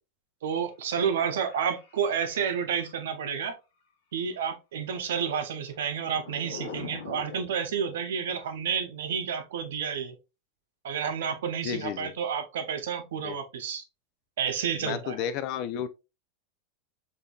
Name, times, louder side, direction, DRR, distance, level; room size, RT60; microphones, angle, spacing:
voice 1, 0.4-3.6 4.1-10.1 10.8-13.8 14.4-15.3, right 7 dB, 85° right, 0.8 m, -30 dB
sound 1, 1.0-3.1 5.6-8.7, left 4 dB, 90° left, 1.1 m, -44 dB
voice 2, 11.6-12.1 13.2-13.4 14.8-15.9, left 9 dB, 50° left, 0.5 m, -32 dB
5.1 x 2.7 x 2.4 m
supercardioid pair, 120°, 0 cm